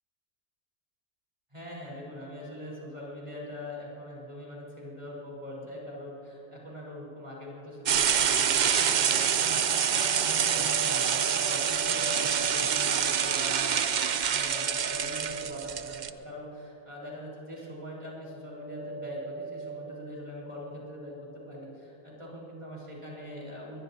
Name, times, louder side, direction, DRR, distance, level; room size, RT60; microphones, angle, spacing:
voice 1, 1.5-23.8, left 1 dB, 25° right, -5 dB, 4.7 m, -42 dB
sound 1, 7.9-16.1, right 8 dB, 55° right, 0.5 m, -26 dB
sound 2, 9.1-17.0 17.3-17.8 18.1-19.9, right 2 dB, ahead, 4.4 m, -41 dB
22.0 x 21.5 x 2.9 m, 2.9 s
omnidirectional pair, 1.3 m